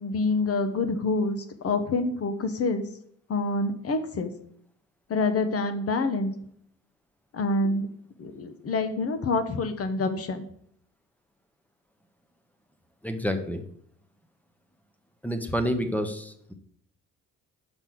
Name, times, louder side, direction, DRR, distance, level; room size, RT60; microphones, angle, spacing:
voice 1, 0.0-1.4 1.6-2.9 3.3-4.3 5.1-6.3 7.3-7.9 8.2-10.5, left 3 dB, 50° left, 9 dB, 1.0 m, -26 dB
voice 2, 13.0-13.6 15.2-16.5, equal, 5° left, 7 dB, 1.0 m, -29 dB
6.0 x 5.4 x 6.3 m, 0.64 s
cardioid pair, 90°, 30 cm